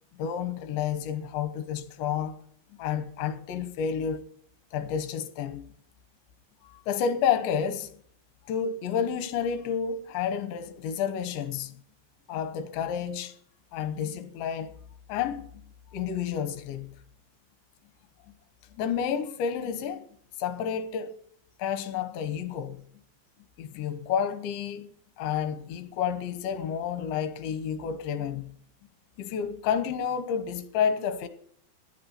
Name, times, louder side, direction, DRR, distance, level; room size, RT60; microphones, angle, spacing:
voice 1, 0.2-2.4 2.7-4.2 4.7-5.7 6.6-7.9 8.5-11.8 12.3-13.4 13.7-14.7 15.1-17.0 18.3-18.4 18.7-20.1 20.4-21.1 21.6-22.9 23.6-28.6 29.2-31.3, left 8 dB, 80° left, 3.4 m, -30 dB
14.5 x 10.5 x 5.7 m
omnidirectional pair, 5.2 m